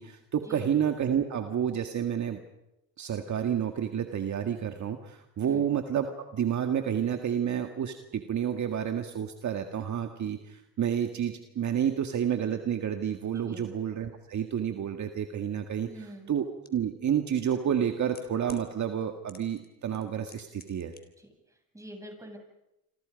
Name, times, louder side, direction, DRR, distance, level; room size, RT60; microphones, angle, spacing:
voice 1, 0.0-2.4 3.0-6.1 6.3-20.9, right 9 dB, 45° right, 5 dB, 1.9 m, -30 dB
voice 2, 13.3-13.7 15.8-16.3 21.2-22.4, right 1 dB, 10° right, 3 dB, 7.7 m, -46 dB
sound 1, 16.6-16.7 17.7-18.6 19.3-19.7 19.9-21.0 21.3-21.4, left 4 dB, 25° left, 4.2 m, -50 dB
27.5 x 26.5 x 5.3 m, 0.89 s
supercardioid pair, 95°, 40 cm